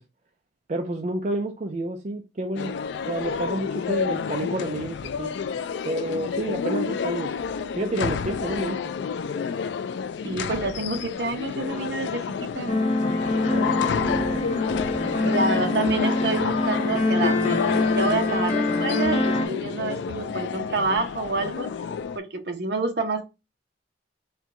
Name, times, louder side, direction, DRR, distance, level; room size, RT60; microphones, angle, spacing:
voice 1, 0.7-2.7 3.1-5.3 5.8-7.3 7.8-8.9 13.5-14.4 15.0-15.2, right 1 dB, 40° right, 0.4 m, -30 dB
sound 1, 2.6-22.2, left 6 dB, 70° left, 0.3 m, -30 dB
voice 2, 10.2-12.7 15.2-17.6 17.9-21.7 22.1-23.2, right 3 dB, 65° right, 0.8 m, -28 dB
sound 2, 12.7-19.5, left 2 dB, 40° left, 0.8 m, -24 dB
4.4 x 2.2 x 3.6 m
head